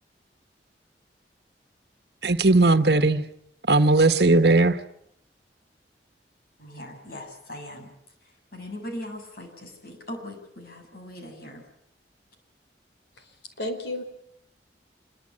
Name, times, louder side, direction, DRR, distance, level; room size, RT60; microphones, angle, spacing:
voice 1, 2.2-3.2 3.7-4.8, right 2 dB, 65° right, 1.4 m, -18 dB
voice 2, 6.6-7.9 8.2-11.7, left 1 dB, 60° left, 7.3 m, -40 dB
voice 3, 13.2-14.0, left 1 dB, 75° left, 5.0 m, -33 dB
27.0 x 23.0 x 8.8 m
head